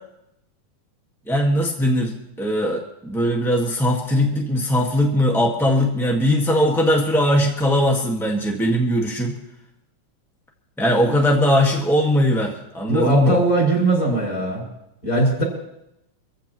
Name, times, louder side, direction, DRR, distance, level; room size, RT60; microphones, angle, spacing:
voice 1, 1.3-9.3 10.8-13.4, equal, 5° left, -1 dB, 0.3 m, -20 dB
voice 2, 12.9-14.7 15.0-15.4, right 2 dB, 25° left, -3 dB, 6.0 m, -20 dB
25.0 x 15.5 x 3.0 m, 0.82 s
omnidirectional pair, 3.5 m